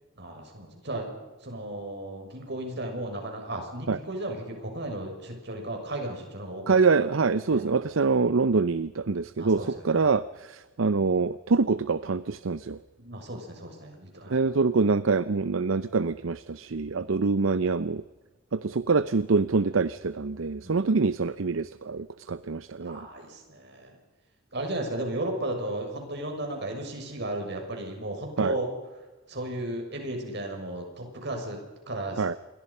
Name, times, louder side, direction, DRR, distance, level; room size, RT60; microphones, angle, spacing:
voice 1, 0.2-1.1 1.4-6.7 7.5-7.6 9.4-10.1 13.0-14.4 17.1-17.3 20.6-21.0 22.8-24.0 24.5-28.7 29.3-31.6 31.9-32.2, right 1 dB, 60° right, 3 dB, 6.5 m, -35 dB
voice 2, 6.7-12.8 14.3-18.0 18.5-23.1 28.4-28.5 32.2-32.4, right 4 dB, 80° right, 15 dB, 0.7 m, -25 dB
28.0 x 22.5 x 5.6 m, 1.2 s
head